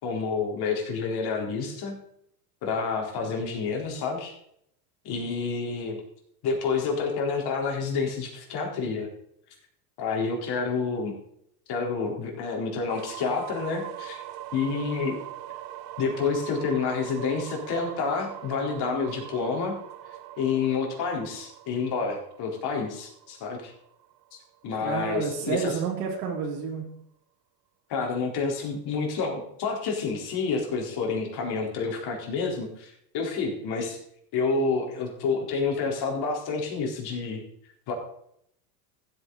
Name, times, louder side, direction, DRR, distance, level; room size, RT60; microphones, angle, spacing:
voice 1, 0.0-2.0 2.6-4.3 5.0-6.0 6.4-9.1 10.0-11.1 11.7-14.2 14.5-15.2 16.0-19.8 20.4-23.7 24.6-25.7 27.9-34.0 34.3-37.4 37.9-38.0, left 4 dB, 55° left, 0 dB, 4.2 m, -29 dB
sound 1, 12.9-24.7, right 13 dB, 50° right, 1.1 m, -42 dB
voice 2, 24.8-26.9, right 6 dB, 80° right, -2 dB, 3.3 m, -30 dB
15.0 x 9.0 x 4.1 m, 0.72 s
supercardioid pair, 105°, 47 cm